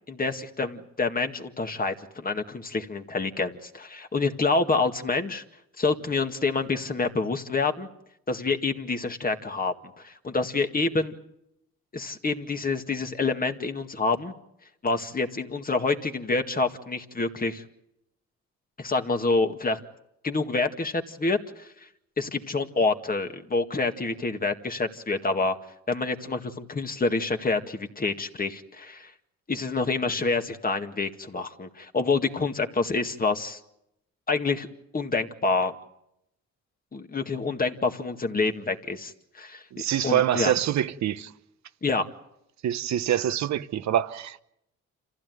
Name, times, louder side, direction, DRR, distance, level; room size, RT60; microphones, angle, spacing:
voice 1, 0.1-5.4 5.8-7.9 8.3-9.7 10.0-11.2 11.9-14.3 14.8-17.6 18.8-19.8 20.2-21.7 22.2-25.6 25.9-29.1 29.5-33.6 34.3-34.7 34.9-35.7 36.9-40.5 41.8-42.0, left 3 dB, 30° left, 2.0 m, -27 dB
voice 2, 39.7-41.3 42.6-44.4, right 11 dB, 65° right, 1.0 m, -25 dB
27.5 x 15.5 x 9.5 m
cardioid pair, 90°, 30 cm